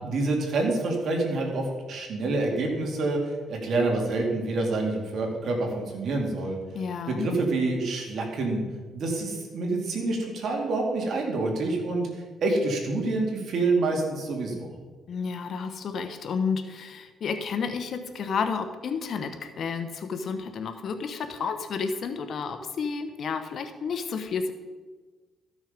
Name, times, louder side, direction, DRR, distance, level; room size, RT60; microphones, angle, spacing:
voice 1, 0.0-6.6 7.1-8.6 8.9-12.1 12.4-14.7, right 2 dB, 65° right, 1 dB, 2.5 m, -27 dB
voice 2, 6.7-7.3 15.1-24.5, left 5 dB, 60° left, 7 dB, 1.0 m, -31 dB
13.5 x 6.3 x 5.2 m, 1.3 s
cardioid pair, 90°, 0 cm